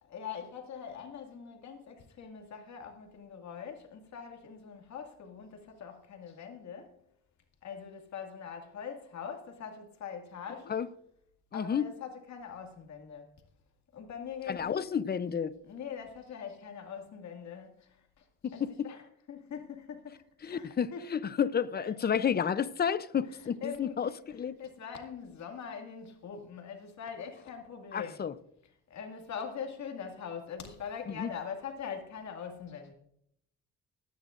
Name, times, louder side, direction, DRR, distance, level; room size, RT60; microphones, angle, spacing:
voice 1, 0.1-6.9 7.6-10.8 11.5-13.3 13.9-14.8 15.6-19.0 19.3-21.0 21.7-21.9 23.3-28.2 28.9-32.9, left 7 dB, 65° left, 2.2 m, -43 dB
voice 2, 11.5-11.9 14.5-15.6 18.4-18.9 20.4-24.5 27.9-28.3 31.2-31.3, left 7 dB, 30° left, 0.6 m, -31 dB
20.0 x 10.0 x 2.5 m
cardioid pair, 90°, 30 cm